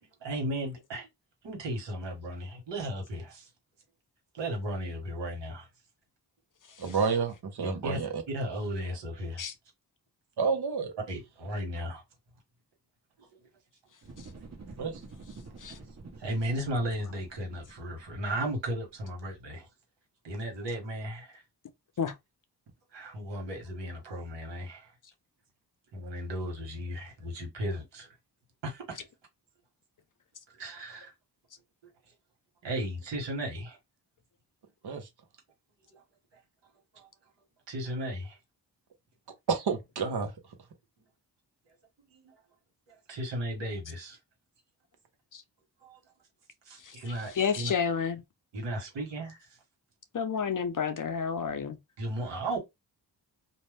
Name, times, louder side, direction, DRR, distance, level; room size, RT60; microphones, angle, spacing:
voice 1, 0.0-1.1 1.4-3.5 4.3-5.7 7.6-8.0 8.3-9.4 11.1-12.0 13.2-13.3 14.8-14.9 15.7-15.9 16.2-19.7 20.2-21.4 22.9-24.9 25.9-28.2 28.6-29.1 30.5-31.1 32.6-33.8 35.9-36.0 36.9-37.1 37.7-38.4 42.1-42.3 42.9-44.2 45.8-46.0 46.6-47.7 48.5-49.6 52.0-52.6, right 1 dB, 85° right, 1.3 m, -35 dB
voice 2, 6.8-8.2 10.4-10.9 14.8-15.0 34.8-35.1 39.5-40.3, right 5 dB, 65° right, 1.0 m, -29 dB
sound 1, 14.0-19.1 19.5-19.6, right 3 dB, 40° right, 1.1 m, -49 dB
voice 3, 46.8-48.2 50.1-51.8, left 6 dB, 50° left, 0.6 m, -31 dB
2.6 x 2.1 x 3.2 m
cardioid pair, 55°, 42 cm